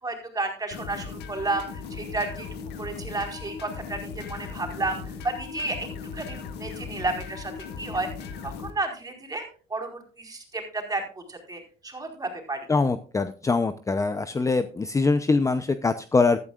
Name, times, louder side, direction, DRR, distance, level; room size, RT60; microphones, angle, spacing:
voice 1, 0.0-2.5 2.8-5.8 6.1-7.5 7.8-9.4 9.7-12.6, right 2 dB, 20° right, 3 dB, 4.6 m, -32 dB
sound 1, 0.7-8.7, left 5 dB, 80° left, 1.9 m, -38 dB
voice 2, 12.7-16.4, left 3 dB, 20° left, 11 dB, 0.7 m, -23 dB
15.0 x 12.5 x 2.5 m, 0.38 s
cardioid pair, 110°, 17 cm